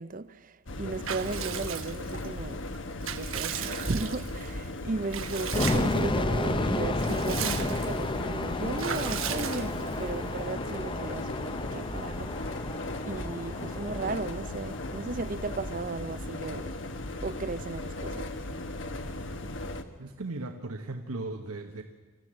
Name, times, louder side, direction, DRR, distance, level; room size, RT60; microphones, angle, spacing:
voice 1, 0.0-2.6 3.1-12.7 13.0-16.7 17.2-18.3, right 3 dB, 40° right, 0.5 m, -35 dB
sound 1, 0.7-19.8, left 2 dB, 55° left, 1.2 m, -37 dB
Water / Bathtub (filling or washing) / Liquid, 1.0-2.3 2.7-4.5 5.1-6.1 6.4-6.5 6.8-8.0 8.8-10.1, right 9 dB, 65° right, 1.0 m, -36 dB
sound 2, 5.5-16.4, left 2 dB, 20° left, 0.6 m, -32 dB
voice 2, 20.0-21.8, right 2 dB, 90° right, 1.2 m, -37 dB
25.0 x 15.0 x 7.6 m
head